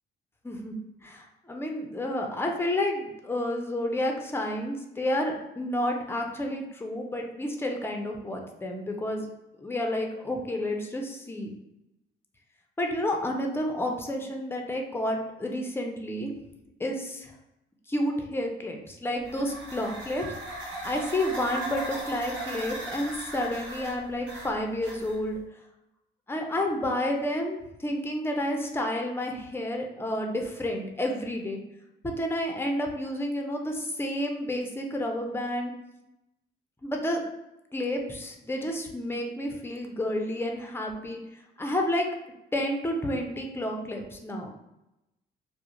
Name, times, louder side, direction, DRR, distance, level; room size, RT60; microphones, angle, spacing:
voice 1, 1.0-9.3 9.6-11.5 12.8-16.3 16.8-17.3 17.9-20.3 20.8-25.4 26.3-31.6 32.0-35.7 36.8-37.2 37.7-41.2 41.6-42.1 42.5-44.5, left 1 dB, 10° left, 2 dB, 0.5 m, -30 dB
sound 1, 19.2-25.4, right 2 dB, 70° right, 0.9 m, -38 dB
2.4 x 2.0 x 2.9 m, 0.90 s
cardioid pair, 90°, 20 cm